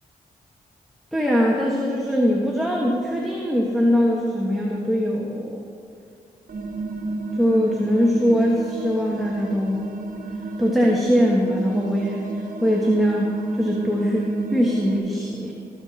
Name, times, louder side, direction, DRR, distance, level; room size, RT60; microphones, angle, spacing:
voice 1, 1.1-5.6 7.4-9.8 10.6-12.3 12.6-15.5, equal, ahead, -3 dB, 1.4 m, -21 dB
sound 1, 6.5-15.0, right 3 dB, 60° right, 0.9 m, -31 dB
17.5 x 5.9 x 4.2 m, 2.4 s
cardioid pair, 60°, 16 cm